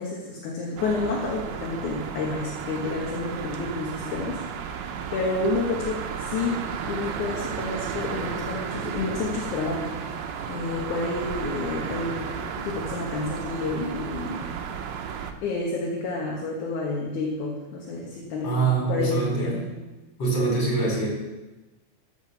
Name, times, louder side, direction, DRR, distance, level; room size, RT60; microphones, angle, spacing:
voice 1, 0.0-4.7 5.1-10.0 10.4-12.4 12.6-14.4 15.4-19.7, left 3 dB, 60° left, -2 dB, 2.5 m, -30 dB
sound 1, 0.8-15.3, right 7 dB, 85° right, 1.5 m, -33 dB
voice 2, 18.4-19.6 20.2-21.1, right 4 dB, 30° left, -3 dB, 5.0 m, -24 dB
14.0 x 6.7 x 6.8 m, 1.1 s
omnidirectional pair, 4.5 m